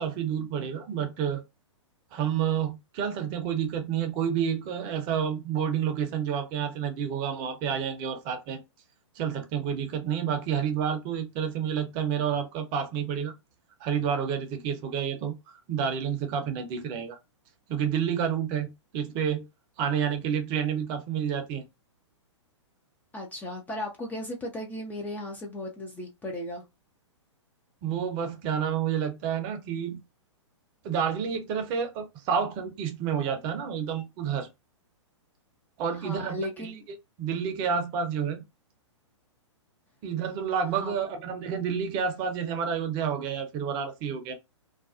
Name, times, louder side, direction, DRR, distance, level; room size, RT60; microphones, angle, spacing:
voice 1, 0.0-1.4 2.1-8.6 9.2-13.3 13.8-15.3 15.7-17.2 17.7-19.4 19.8-21.6 27.8-30.0 30.8-34.5 35.8-36.7 37.2-38.4 40.0-44.3, right 7 dB, 30° right, 0.6 m, -29 dB
voice 2, 23.1-26.6 35.9-36.8 40.8-40.9, left 1 dB, 10° left, 0.4 m, -36 dB
2.4 x 2.2 x 2.4 m
figure-of-eight pair, 115°, 16 cm